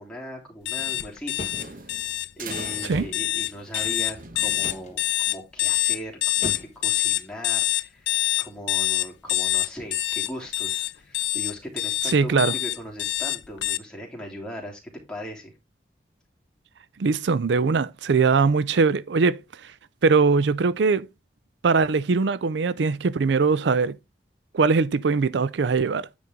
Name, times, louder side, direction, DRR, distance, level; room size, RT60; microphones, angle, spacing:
voice 1, 0.0-2.0 2.4-15.5, equal, 5° left, 3.0 m, -39 dB
sound 1, 0.7-13.8, left 16 dB, 85° left, 0.5 m, -25 dB
sound 2, 0.8-5.2, right 3 dB, 50° right, 1.2 m, -42 dB
sound 3, 1.3-1.7 2.9-3.2 4.6-4.9 6.4-6.8, left 1 dB, 40° left, 1.9 m, -35 dB
voice 2, 12.0-12.5 17.0-19.7 20.0-21.1 21.6-24.0 24.5-26.1, right 4 dB, 80° right, 0.4 m, -21 dB
9.4 x 5.3 x 3.6 m
head